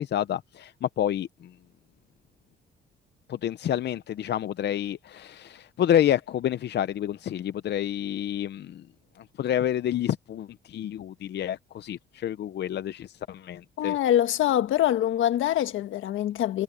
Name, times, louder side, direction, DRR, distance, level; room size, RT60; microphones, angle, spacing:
voice 1, 0.0-1.5 3.3-8.8 9.4-14.0, left 10 dB, 60° left, 0.7 m, -28 dB
voice 2, 13.8-16.6, left 12 dB, 80° left, 1.5 m, -24 dB
cardioid pair, 90°, 20 cm